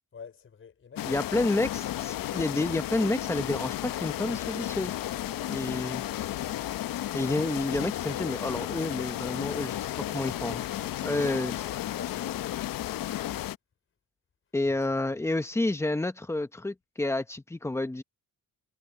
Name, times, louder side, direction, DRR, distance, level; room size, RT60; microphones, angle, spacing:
voice 1, 0.1-1.6 9.9-12.7 14.6-14.8 15.1-15.2, left 6 dB, 40° left, 4.7 m, -49 dB
sound 1, 1.0-13.6, left 13 dB, 75° left, 0.8 m, -33 dB
voice 2, 1.0-1.7 2.0-5.0 5.5-6.0 7.1-9.9 10.1-10.6 11.0-11.6 14.5-18.0, left 2 dB, 10° left, 1.0 m, -29 dB
cardioid pair, 145°, 34 cm